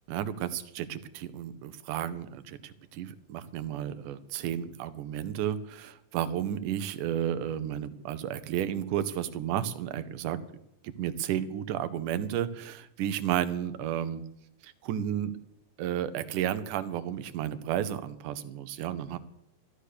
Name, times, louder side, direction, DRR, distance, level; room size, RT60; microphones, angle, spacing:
voice 1, 0.1-10.4 10.8-14.2 14.6-15.3 15.8-19.2, right 10 dB, 75° right, 12 dB, 2.2 m, -32 dB
13.5 x 12.0 x 6.6 m, 0.80 s
omnidirectional pair, 4.0 m